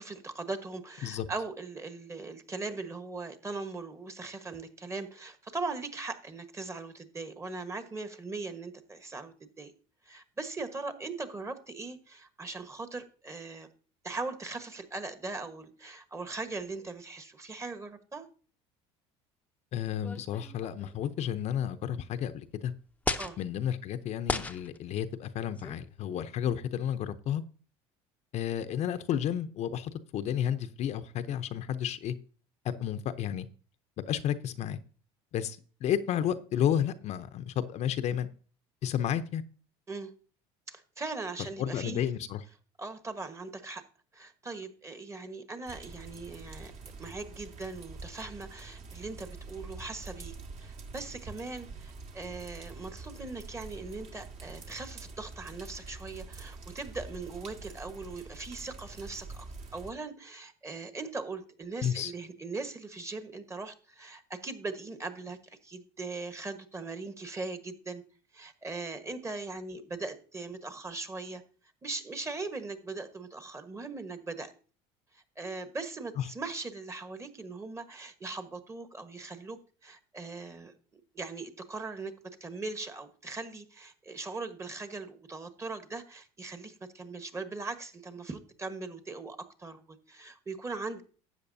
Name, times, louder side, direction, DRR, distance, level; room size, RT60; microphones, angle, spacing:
voice 1, 0.0-9.7 10.0-13.7 14.0-18.3 23.2-23.4 39.9-40.1 40.7-42.1 42.8-43.8 44.1-46.7 47.0-59.5 59.7-68.0 68.3-71.4 71.8-74.5 75.1-80.7 81.1-91.0, right 3 dB, 20° right, 9 dB, 1.3 m, -40 dB
voice 2, 19.7-22.7 23.4-27.4 28.3-32.1 32.6-33.5 34.0-34.8 35.3-38.3 38.8-39.4 41.6-42.4 61.8-62.1 76.2-76.3, left 10 dB, 55° left, 10 dB, 0.7 m, -32 dB
sound 1, 20.0-21.0 21.9-22.0 23.0-23.4 24.2-24.8 25.6-25.8, left 3 dB, 10° left, 0.7 m, -34 dB
sound 2, 45.7-59.9, right 3 dB, 50° right, 1.9 m, -46 dB
12.5 x 8.1 x 2.7 m, 0.39 s
supercardioid pair, 95°, 14 cm